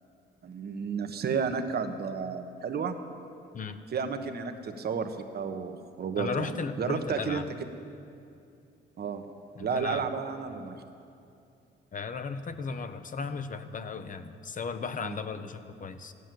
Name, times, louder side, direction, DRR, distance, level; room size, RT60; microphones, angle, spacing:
voice 1, 0.4-3.0 3.9-6.5 6.8-7.4 9.0-9.3 9.6-10.8 15.0-15.2, right 6 dB, 55° right, 7 dB, 1.2 m, -32 dB
voice 2, 6.2-7.5 9.6-10.1 11.9-16.1, left 5 dB, 40° left, 10 dB, 0.9 m, -36 dB
15.0 x 11.0 x 7.8 m, 2.6 s
cardioid pair, 90°, 20 cm